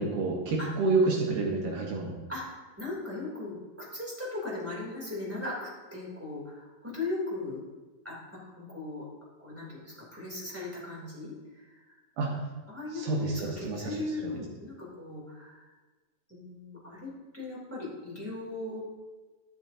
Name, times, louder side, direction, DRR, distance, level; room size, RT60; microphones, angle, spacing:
voice 1, 0.0-2.1 12.2-12.4 12.9-13.9, right 3 dB, 65° right, -2 dB, 2.1 m, -28 dB
voice 2, 2.3-7.6 8.0-8.2 8.6-9.0 9.4-11.9 12.7-15.6 16.3-18.8, left 2 dB, 5° right, -7 dB, 2.0 m, -38 dB
12.5 x 7.3 x 2.8 m, 1.3 s
omnidirectional pair, 4.9 m